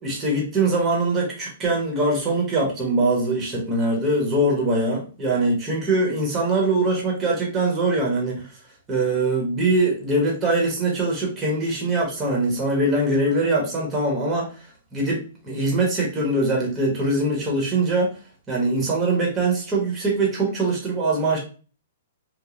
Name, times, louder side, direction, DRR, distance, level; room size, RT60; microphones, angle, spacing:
voice 1, 0.0-8.4 8.9-14.4 14.9-15.2 15.4-18.1 18.5-21.4, right 2 dB, 20° right, -2 dB, 1.1 m, -22 dB
3.1 x 2.2 x 2.4 m, 0.37 s
hypercardioid pair, 140°, 0 cm